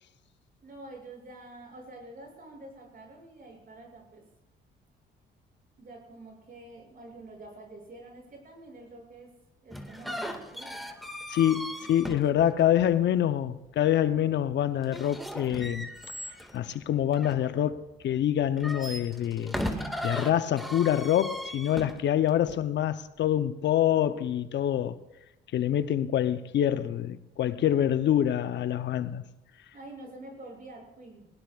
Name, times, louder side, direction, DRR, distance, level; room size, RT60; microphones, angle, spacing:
voice 1, 0.6-4.2 5.8-9.3 9.6-10.9 29.7-31.3, right 2 dB, 45° right, 6.5 m, -47 dB
sound 1, 9.7-13.0 14.8-17.9 18.4-22.6, equal, ahead, 1.8 m, -37 dB
voice 2, 11.3-15.9 16.5-19.5 20.0-25.0 25.5-29.2, left 11 dB, 65° left, 0.6 m, -26 dB
21.0 x 18.0 x 2.4 m
cardioid pair, 90°, 20 cm